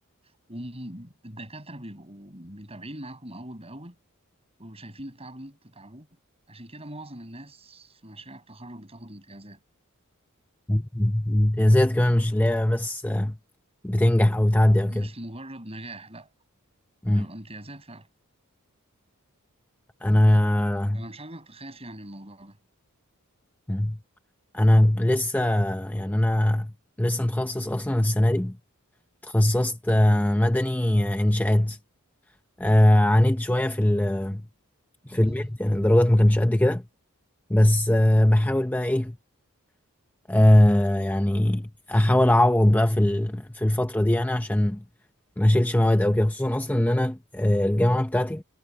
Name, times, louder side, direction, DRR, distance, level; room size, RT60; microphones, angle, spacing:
voice 1, 0.5-4.0 4.6-6.1 6.5-9.6 14.9-16.3 17.1-18.1 20.9-22.6 35.1-35.4, right 1 dB, 25° right, 7.9 m, -42 dB
voice 2, 10.7-13.4 13.8-15.1 17.0-17.3 20.0-21.0 23.7-24.0 24.5-26.7 27.0-28.6 29.2-31.8 32.6-34.5 35.1-36.8 37.5-39.2 40.3-44.8 45.4-48.4, left 1 dB, 10° left, 0.6 m, -21 dB
head